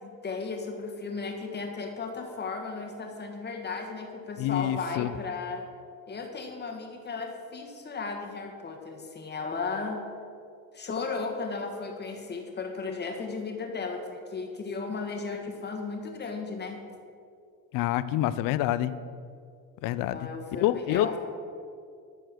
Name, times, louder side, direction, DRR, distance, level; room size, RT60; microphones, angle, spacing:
voice 1, 0.0-5.6 6.1-10.0 10.7-16.8 20.1-21.2, left 4 dB, 30° left, 3 dB, 1.5 m, -35 dB
voice 2, 4.4-5.1 17.7-18.9 19.8-21.2, left 13 dB, 65° left, 15 dB, 0.5 m, -27 dB
13.0 x 4.5 x 6.0 m, 2.4 s
cardioid pair, 105°, 36 cm